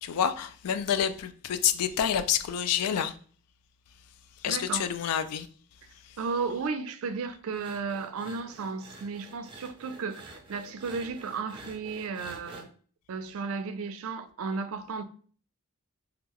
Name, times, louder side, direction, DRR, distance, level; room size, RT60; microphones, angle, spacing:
voice 1, 0.0-3.1 4.4-5.5, left 9 dB, 85° left, 0.4 m, -28 dB
voice 2, 4.5-4.9 6.2-12.7 13.1-15.0, right 4 dB, 65° right, 0.4 m, -34 dB
sound 1, 7.5-12.6, right 2 dB, 25° right, 0.6 m, -49 dB
3.6 x 2.3 x 3.0 m
head